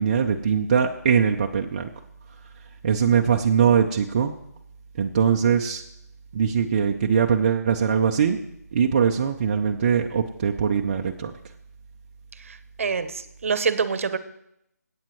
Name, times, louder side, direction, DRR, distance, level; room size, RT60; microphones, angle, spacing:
voice 1, 0.0-1.8 2.8-4.3 5.0-5.8 6.4-8.4 8.8-11.0, right 7 dB, 30° right, 1 dB, 0.5 m, -21 dB
voice 2, 12.4-14.2, right 5 dB, 50° right, 13 dB, 0.9 m, -26 dB
21.5 x 8.6 x 3.1 m, 0.79 s
figure-of-eight pair, 160°, 9 cm